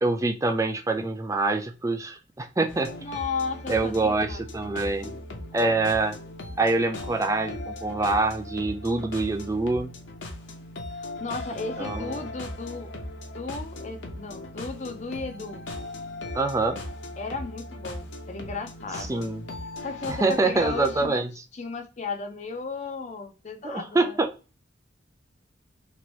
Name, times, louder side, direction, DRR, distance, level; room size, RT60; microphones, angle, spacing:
voice 1, 0.0-2.9 3.7-5.1 5.5-6.2 6.6-10.0 11.8-12.2 16.3-16.8 19.1-19.4 20.1-21.3 23.6-24.3, right 3 dB, 15° right, 0.3 m, -25 dB
sound 1, 2.7-21.1, left 1 dB, 70° left, 0.8 m, -38 dB
voice 2, 3.0-4.4 11.0-12.9 13.3-15.6 17.2-19.3 19.8-21.2 21.5-24.2, left 4 dB, 35° left, 0.5 m, -35 dB
3.0 x 2.6 x 3.0 m
head